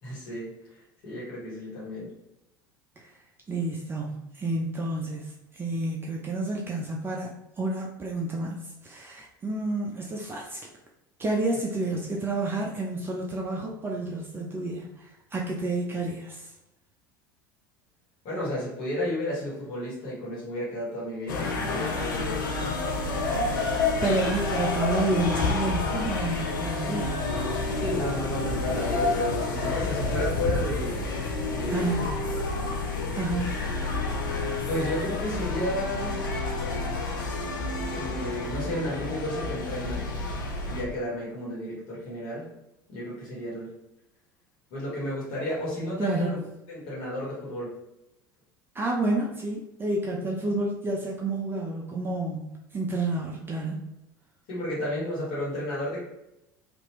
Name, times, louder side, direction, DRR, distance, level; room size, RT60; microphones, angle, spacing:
voice 1, 0.0-0.5 1.0-2.1 18.2-22.5 23.0-23.1 27.8-31.0 31.5-32.4 34.7-36.2 37.9-40.0 40.7-42.5 42.9-43.7 44.7-46.4 46.7-47.7 54.5-56.0, left 1 dB, 55° left, -7 dB, 1.3 m, -32 dB
voice 2, 3.5-5.2 5.6-10.6 11.2-14.9 15.3-16.4 24.0-27.3 31.7-32.1 33.1-33.5 46.0-46.4 48.8-53.8, right 2 dB, 20° right, -1 dB, 0.5 m, -29 dB
sound 1, 21.3-40.8, left 3 dB, 70° left, 0.5 m, -29 dB
2.8 x 2.5 x 3.1 m, 0.89 s
figure-of-eight pair, 70°, 11 cm